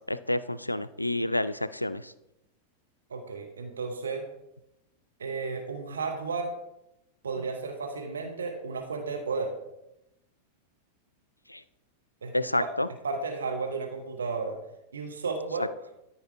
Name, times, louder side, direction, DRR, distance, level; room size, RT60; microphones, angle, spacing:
voice 1, 0.1-2.1 11.5-11.6 12.3-12.9, left 1 dB, 85° left, 15 dB, 0.3 m, -29 dB
voice 2, 3.1-4.2 5.2-6.5 7.2-9.5 12.2-12.3 12.6-12.7 13.0-14.6 14.9-15.7, right 4 dB, 70° right, 3 dB, 1.1 m, -33 dB
13.5 x 4.5 x 3.5 m, 0.86 s
figure-of-eight pair, 90°, 0 cm